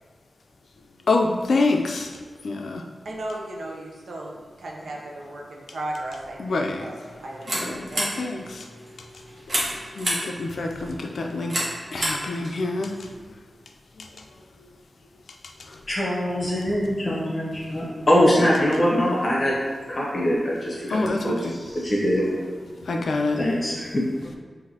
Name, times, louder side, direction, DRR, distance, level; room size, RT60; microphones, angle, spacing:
voice 1, 1.1-2.1 2.4-2.8 6.4-6.9 7.5-8.7 9.9-11.7 11.9-13.0 14.0-14.1 15.6-15.8 20.9-21.5 22.9-23.4, left 3 dB, 70° left, 3 dB, 0.4 m, -26 dB
voice 2, 3.0-8.1, right 1 dB, 80° right, -1 dB, 0.7 m, -36 dB
sound 1, 7.0-13.1, right 1 dB, 50° right, 1.1 m, -32 dB
voice 3, 15.9-19.6 19.9-22.5 22.9-23.0 23.4-24.1, equal, 30° left, -5 dB, 0.9 m, -23 dB
5.8 x 2.6 x 2.8 m, 1.4 s
wide cardioid pair, 135°, 0 cm